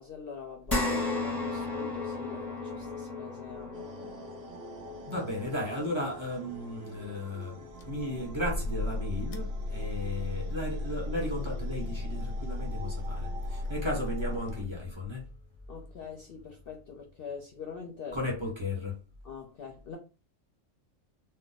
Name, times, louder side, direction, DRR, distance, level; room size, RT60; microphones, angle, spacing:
voice 1, 0.0-3.8 15.7-18.2 19.2-20.0, left 6 dB, 60° left, 0.6 m, -44 dB
sound 1, 0.7-9.3 9.7-9.8 11.3-11.4, left 3 dB, ahead, 0.7 m, -36 dB
sound 2, 3.7-14.6, right 5 dB, 65° right, 0.7 m, -49 dB
voice 2, 5.1-15.2 18.1-19.0, left 1 dB, 25° right, 1.0 m, -35 dB
sound 3, 7.8-15.2, left 2 dB, 85° left, 1.0 m, -35 dB
2.5 x 2.1 x 3.9 m
omnidirectional pair, 1.4 m